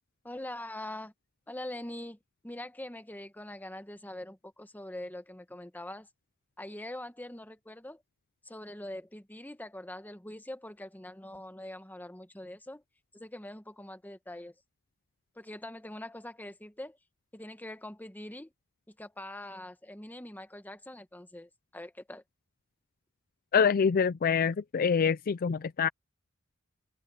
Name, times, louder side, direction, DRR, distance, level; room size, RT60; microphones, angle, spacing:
voice 1, 0.2-1.1 1.5-2.2 2.4-6.1 6.6-8.0 8.4-12.8 13.1-14.5 15.4-17.0 17.3-18.5 18.9-22.2, left 1 dB, 10° left, 1.1 m, -43 dB
voice 2, 23.5-25.9, left 6 dB, 45° left, 0.4 m, -25 dB
open air
head